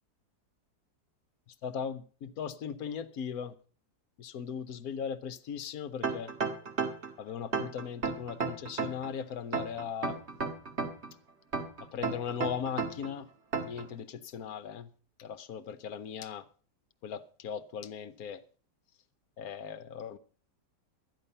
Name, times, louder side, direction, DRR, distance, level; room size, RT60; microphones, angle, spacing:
voice 1, 1.6-3.5 4.2-6.3 7.2-10.2 11.9-13.3 13.6-14.9 15.2-16.4 17.0-18.4 19.4-20.2, left 7 dB, 65° left, 1.2 m, -38 dB
sound 1, 6.0-7.1 7.5-9.1 9.5-11.1 11.5-13.1 13.5-13.8, right 5 dB, 40° right, 1.8 m, -32 dB
13.0 x 10.5 x 5.4 m
omnidirectional pair, 1.8 m